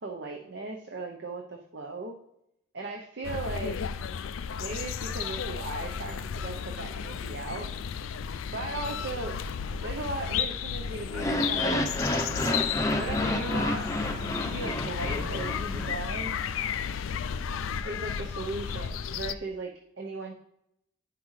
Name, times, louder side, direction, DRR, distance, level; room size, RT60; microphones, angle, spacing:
voice 1, 0.0-2.2 2.7-3.8 4.6-7.7 8.5-9.4 9.8-11.8 13.0-13.9 14.4-16.4 17.8-19.7 20.0-20.4, right 3 dB, 60° right, 1 dB, 0.7 m, -37 dB
sound 1, 3.2-19.3, left 7 dB, 80° left, 0.4 m, -33 dB
sound 2, 11.1-16.3, left 1 dB, 15° left, 0.6 m, -30 dB
9.6 x 5.9 x 3.2 m, 0.80 s
head